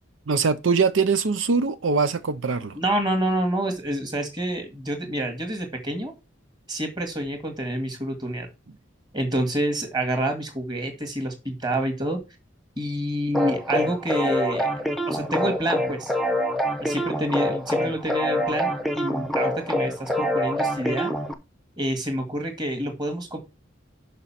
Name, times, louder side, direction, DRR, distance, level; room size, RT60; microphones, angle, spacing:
voice 1, 0.3-2.8, right 5 dB, 80° right, 0.6 m, -22 dB
voice 2, 2.8-6.1 6.7-8.5 9.1-12.2 12.8-14.7 15.1-16.1 16.8-21.1 21.8-23.4, right 1 dB, 20° right, 2.0 m, -28 dB
sound 1, 13.3-21.3, equal, ahead, 0.7 m, -26 dB
6.6 x 5.5 x 5.8 m
head